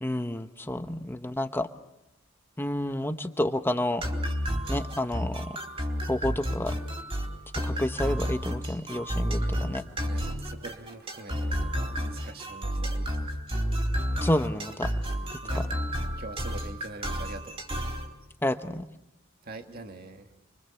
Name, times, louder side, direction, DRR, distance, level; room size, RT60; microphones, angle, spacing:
voice 1, 0.0-1.7 2.6-4.0 4.7-5.6 6.1-6.7 7.6-9.8 14.2-14.9 15.3-15.7 18.4-18.9, left 1 dB, 10° left, 7 dB, 0.9 m, -30 dB
sound 1, 4.0-18.1, equal, 30° right, 3.9 m, -31 dB
voice 2, 9.4-13.3 15.4-15.6 16.2-17.6 19.4-20.3, right 2 dB, 45° right, 5 dB, 1.9 m, -44 dB
29.0 x 24.0 x 7.1 m, 0.87 s
head